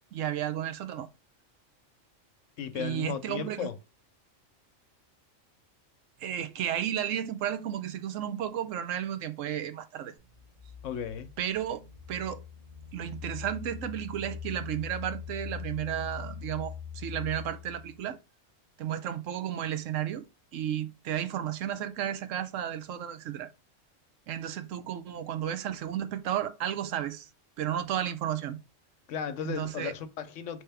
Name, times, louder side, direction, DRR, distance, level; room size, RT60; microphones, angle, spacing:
voice 1, 0.1-1.1 2.7-3.7 6.2-10.1 11.4-11.8 12.1-12.4 12.9-18.2 18.8-20.2 20.5-23.5 24.3-27.3 27.6-28.6 29.4-29.9, right 10 dB, 80° right, 1.0 m, -33 dB
voice 2, 2.6-3.7 10.8-11.3 29.1-30.6, left 8 dB, 75° left, 1.0 m, -35 dB
sound 1, 10.2-18.0, left 7 dB, 35° right, 2.3 m, -42 dB
4.3 x 3.3 x 3.4 m
omnidirectional pair, 1.3 m